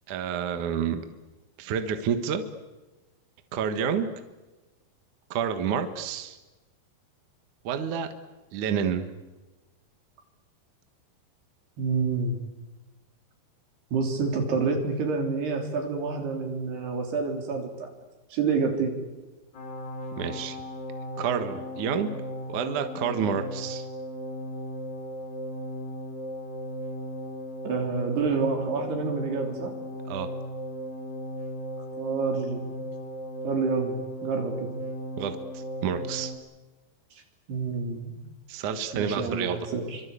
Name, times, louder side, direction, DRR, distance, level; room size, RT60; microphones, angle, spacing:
voice 1, 0.1-1.0 1.6-2.4 3.5-4.1 5.3-6.4 7.6-8.1 8.5-9.1 20.2-20.6 21.2-22.1 22.5-23.9 30.1-30.3 35.2-36.3 38.5-39.6, right 7 dB, 60° right, 8 dB, 2.6 m, -29 dB
voice 2, 11.8-12.4 13.9-17.9 18.3-19.0 27.7-29.7 32.0-32.9 33.4-34.7 37.5-38.1 38.9-40.0, right 4 dB, 80° right, 3 dB, 5.5 m, -28 dB
sound 1, 19.5-36.3, equal, 65° left, 6.5 m, -36 dB
28.0 x 25.0 x 8.4 m, 1.2 s
omnidirectional pair, 4.6 m